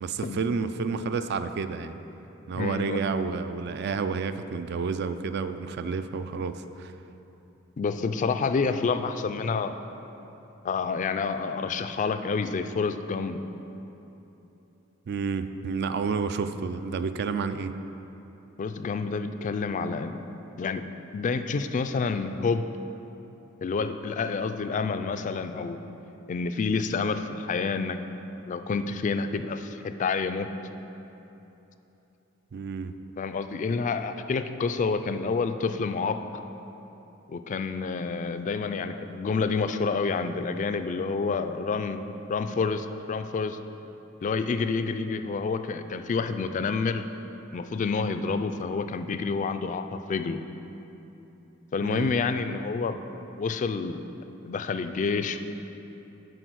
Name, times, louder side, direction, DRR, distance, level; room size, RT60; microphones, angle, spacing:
voice 1, 0.0-2.0 2.5-6.9 15.1-17.7 32.5-32.9 51.8-52.1, right 5 dB, 55° right, 10 dB, 0.3 m, -30 dB
voice 2, 2.5-3.0 7.8-9.8 10.6-13.4 18.6-20.2 20.6-20.9 21.1-22.7 23.6-25.8 26.3-28.0 28.5-30.5 33.2-36.2 37.3-43.6 44.2-47.0 47.5-50.4 51.7-53.0 53.4-54.1 54.4-55.4, left 4 dB, 40° left, 9 dB, 0.3 m, -28 dB
7.8 x 5.0 x 6.2 m, 3.0 s
head